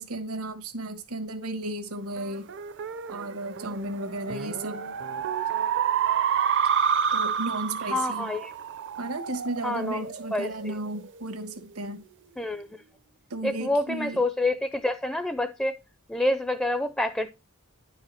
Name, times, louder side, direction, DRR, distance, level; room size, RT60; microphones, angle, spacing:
voice 1, 0.0-2.5 3.1-4.8 7.1-8.3 9.0-12.0 13.3-14.2, right 2 dB, 85° right, 1.2 m, -34 dB
sound 1, 2.2-11.0, right 7 dB, 55° right, 0.6 m, -29 dB
voice 2, 7.9-8.5 9.6-10.0 10.3-10.7 12.4-12.7 13.4-15.8 16.1-17.3, left 1 dB, 5° left, 0.4 m, -27 dB
11.0 x 4.8 x 4.4 m
head